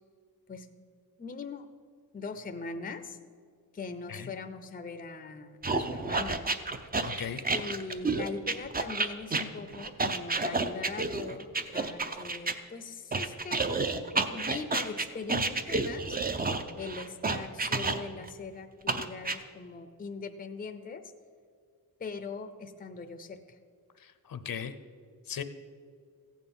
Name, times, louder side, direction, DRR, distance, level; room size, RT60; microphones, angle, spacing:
voice 1, 1.2-1.7 2.1-3.2 3.7-6.5 7.5-16.2 16.8-21.0 22.0-23.6, left 4 dB, 25° left, 9 dB, 0.6 m, -41 dB
sound 1, 5.6-12.6 13.1-18.3 18.9-19.4, right 3 dB, 25° right, 0.6 m, -30 dB
voice 2, 7.0-7.4 24.0-24.7 25.3-25.4, left 8 dB, 60° left, 11 dB, 0.7 m, -37 dB
15.0 x 9.2 x 5.4 m, 2.1 s
wide cardioid pair, 130°, 38 cm